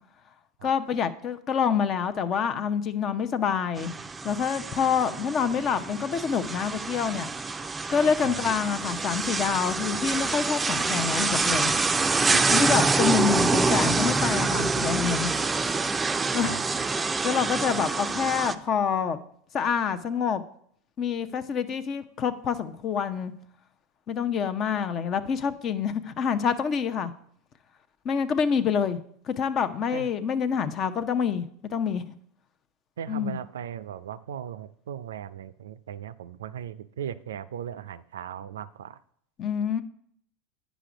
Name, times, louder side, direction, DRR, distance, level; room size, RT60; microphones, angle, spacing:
voice 1, 0.6-3.9 4.2-7.3 7.9-11.7 12.5-15.3 16.3-16.6 17.0-19.2 19.5-20.4 21.0-23.3 24.1-27.1 28.0-29.0 29.3-32.0 33.1-33.4 39.4-39.8, left 7 dB, 40° left, 12 dB, 0.6 m, -27 dB
sound 1, 3.8-18.6, right 3 dB, 15° right, 0.4 m, -26 dB
voice 2, 8.2-8.5 12.3-12.4 16.4-16.6 29.9-30.1 33.0-39.0, right 9 dB, 80° right, 15 dB, 0.4 m, -37 dB
9.0 x 5.1 x 4.9 m, 0.66 s
hypercardioid pair, 85°, 0 cm